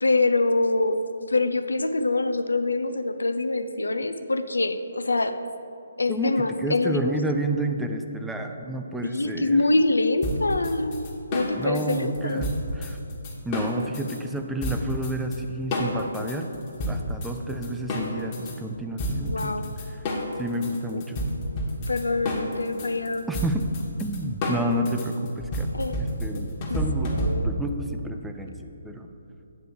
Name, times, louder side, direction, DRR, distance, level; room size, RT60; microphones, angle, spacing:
voice 1, 0.0-1.0 1.3-5.4 6.0-7.1 9.0-11.0 11.3-12.4 19.3-19.6 20.9-21.1 21.9-23.2 25.7-26.0 26.3-26.8 27.1-27.5, left 2 dB, 85° left, 9 dB, 0.4 m, -25 dB
voice 2, 6.1-9.6 11.5-13.0 13.4-16.5 16.9-20.0 20.4-21.2 23.3-23.6 24.0-25.7 26.0-29.1, right 1 dB, 5° right, 4 dB, 0.4 m, -30 dB
sound 1, 10.2-14.2 14.6-15.4 15.7-18.6 19.0-27.7, equal, 30° left, 1.4 m, -29 dB
8.6 x 3.4 x 6.7 m, 2.7 s
figure-of-eight pair, 145°, 0 cm